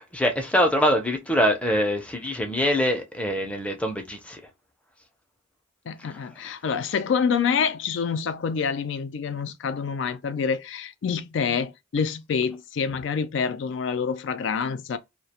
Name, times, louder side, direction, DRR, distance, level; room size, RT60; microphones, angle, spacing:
voice 1, 0.0-4.4 6.0-6.1, equal, 5° left, 0.5 m, -24 dB
voice 2, 5.9-15.0, left 6 dB, 65° left, 0.3 m, -27 dB
2.3 x 2.1 x 2.8 m
head